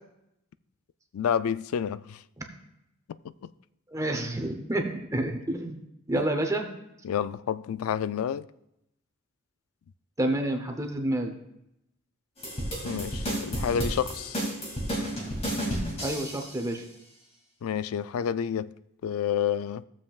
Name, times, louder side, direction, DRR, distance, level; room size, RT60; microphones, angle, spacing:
voice 1, 1.1-2.2 3.4-3.5 6.1-6.2 7.0-8.5 12.8-14.4 17.6-18.7 19.0-19.8, left 8 dB, 75° left, 0.3 m, -29 dB
voice 2, 3.9-5.8 6.1-6.7 10.2-11.4 16.0-16.9, right 1 dB, 15° right, 0.8 m, -29 dB
sound 1, 12.4-16.6, equal, 30° left, 2.4 m, -32 dB
15.0 x 7.3 x 2.4 m
head